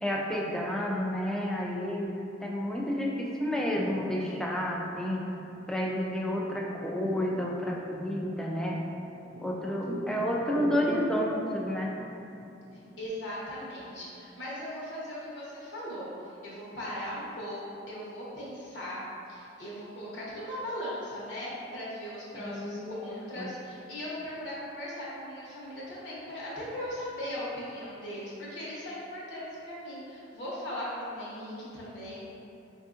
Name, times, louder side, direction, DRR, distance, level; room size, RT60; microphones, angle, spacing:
voice 1, 0.0-2.1 2.4-5.3 5.7-8.8 9.4-11.9 22.3-23.5, equal, 5° left, -3 dB, 0.3 m, -30 dB
sound 1, 3.3-13.1, equal, 55° right, 0.7 m, -43 dB
voice 2, 12.7-19.0 19.3-32.2, equal, 70° left, -7 dB, 0.9 m, -38 dB
4.2 x 2.6 x 2.4 m, 2.7 s
head